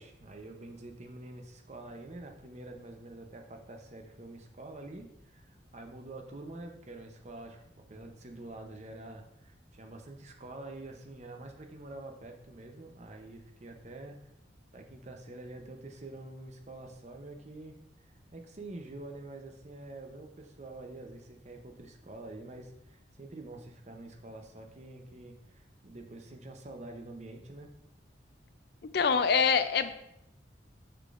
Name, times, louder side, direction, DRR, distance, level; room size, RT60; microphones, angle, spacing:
voice 1, 0.0-14.2 14.7-17.8 18.0-27.7, right 2 dB, 35° right, 4 dB, 0.7 m, -47 dB
voice 2, 28.9-29.9, left 6 dB, 55° left, 11 dB, 0.4 m, -25 dB
6.6 x 5.8 x 2.5 m, 0.78 s
head